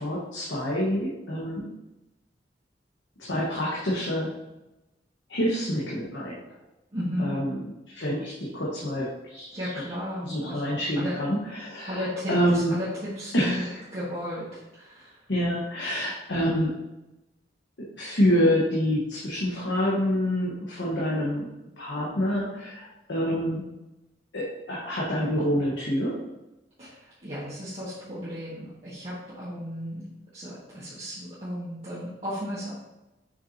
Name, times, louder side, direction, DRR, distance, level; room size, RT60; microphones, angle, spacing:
voice 1, 0.0-1.7 3.2-4.4 5.3-6.4 7.2-7.6 7.9-9.6 10.2-12.0 12.3-12.7 13.3-13.7 15.3-16.8 17.8-21.5 21.8-23.7 24.3-26.2, equal, 85° left, -6 dB, 1.3 m, -27 dB
voice 2, 6.9-7.3 9.5-11.2 11.9-13.6 13.9-15.2 26.8-30.0 30.3-32.8, equal, 35° right, -10 dB, 1.7 m, -34 dB
7.2 x 5.6 x 2.8 m, 0.98 s
head